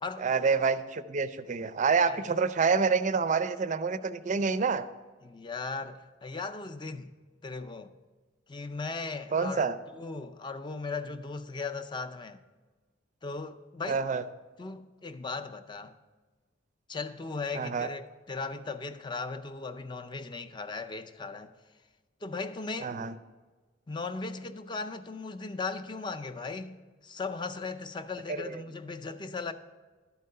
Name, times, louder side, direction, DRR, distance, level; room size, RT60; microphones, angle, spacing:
voice 1, 0.2-4.9 9.3-9.8 13.9-14.2 17.5-17.9 22.8-23.1 28.3-28.6, right 5 dB, 40° right, 0.4 m, -27 dB
voice 2, 5.2-7.1 7.4-7.9 8.5-9.7 9.9-12.4 13.2-14.0 14.6-16.0 16.9-21.5 22.2-23.0 23.9-29.5, left 4 dB, 25° left, 0.4 m, -37 dB
11.5 x 4.7 x 6.6 m
head